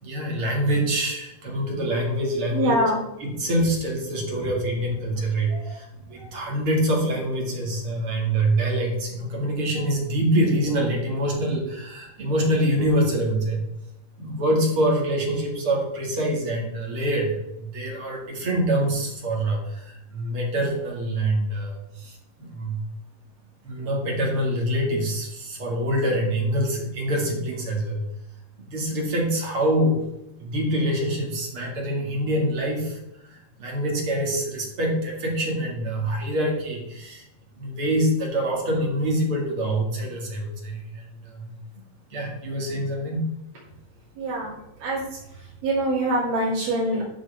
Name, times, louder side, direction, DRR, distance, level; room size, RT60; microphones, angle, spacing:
voice 1, 0.0-2.8 3.2-13.6 14.2-22.8 23.6-28.0 28.6-30.0 30.4-37.3 37.6-41.5 42.1-43.2, right 1 dB, 40° right, -1 dB, 2.3 m, -25 dB
voice 2, 2.5-3.0 5.5-5.6 6.2-6.3 44.2-45.0 45.6-47.0, right 1 dB, 70° right, -8 dB, 4.3 m, -24 dB
11.0 x 7.3 x 3.4 m, 0.87 s
omnidirectional pair, 4.5 m